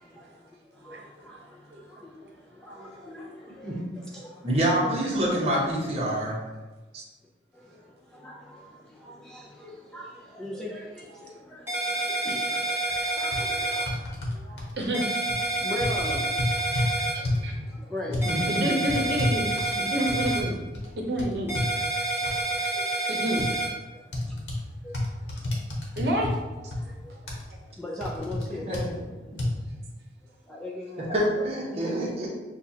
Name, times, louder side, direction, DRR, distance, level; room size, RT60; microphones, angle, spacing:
voice 1, 0.0-4.5 4.8-5.3 6.0-6.1 7.5-14.7 15.4-18.3 18.6-18.7 20.8-20.9 22.2-23.1 23.9-26.0 26.6-28.7 29.4-29.5 30.2-31.7, left 1 dB, 5° left, -5 dB, 0.5 m, -41 dB
voice 2, 2.7-3.3 3.6-3.7 4.4-6.4 14.3-14.6 16.7-16.8 18.2-18.8 28.7-28.9 29.3-29.4 31.1-32.3, right 1 dB, 35° right, -4 dB, 1.1 m, -27 dB
sound 1, 11.7-13.9 14.9-17.1 18.2-20.4 21.5-23.7, right 2 dB, 15° right, 1.3 m, -28 dB
sound 2, 12.9-13.0 13.3-13.4 13.9-14.7 15.3-15.5 15.8-16.9 17.2-17.5 18.1-18.3 18.9-20.5 20.7-20.9 21.2-21.7 22.3-22.4 23.4-23.5 24.1-24.6 24.9-26.4 26.7-26.8 27.3-27.4 28.0-28.4 28.7-28.9 29.4-29.5, left 1 dB, 85° left, 1.0 m, -29 dB
voice 3, 14.8-15.2 17.1-17.5 18.5-20.5 21.1-21.5 23.1-23.4 26.0-26.3 26.6-26.7, equal, 70° right, 0 dB, 0.8 m, -29 dB
6.6 x 2.4 x 2.8 m, 1.2 s
head